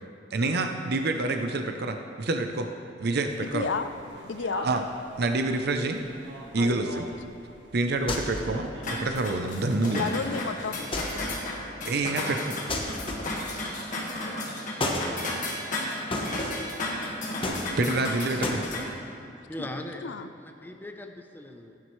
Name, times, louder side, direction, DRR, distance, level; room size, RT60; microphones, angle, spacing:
voice 1, 0.3-2.7 3.0-3.7 4.6-4.8 5.2-6.0 6.5-7.1 7.7-10.1 11.9-12.6 13.5-13.6 17.8-18.6, right 2 dB, 60° right, 5 dB, 0.6 m, -27 dB
sound 1, 3.3-10.8, right 1 dB, 85° right, 1.5 m, -44 dB
voice 2, 3.4-3.9 4.3-4.7 6.6-6.7 9.9-11.1 19.2-19.7 20.0-20.3, left 5 dB, 80° left, 10 dB, 0.5 m, -32 dB
sound 2, 8.1-8.6 10.9-11.4 12.7-13.5 14.8-15.1 16.1-16.7 17.4-18.0 18.4-18.6, left 1 dB, 30° left, 1.1 m, -31 dB
sound 3, 8.8-18.8, left 1 dB, 45° left, 1.7 m, -34 dB
voice 3, 19.5-21.8, left 1 dB, 10° left, 4 dB, 0.7 m, -40 dB
15.5 x 9.4 x 3.2 m, 2.7 s
head